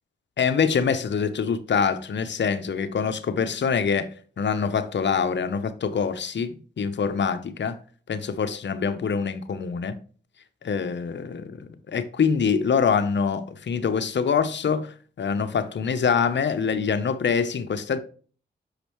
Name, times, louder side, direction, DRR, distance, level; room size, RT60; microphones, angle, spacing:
voice 1, 0.4-4.1 4.4-7.8 8.1-10.0 10.6-18.0, left 6 dB, 60° left, 0.8 m, -25 dB
6.4 x 5.0 x 3.1 m
cardioid pair, 45°, 20 cm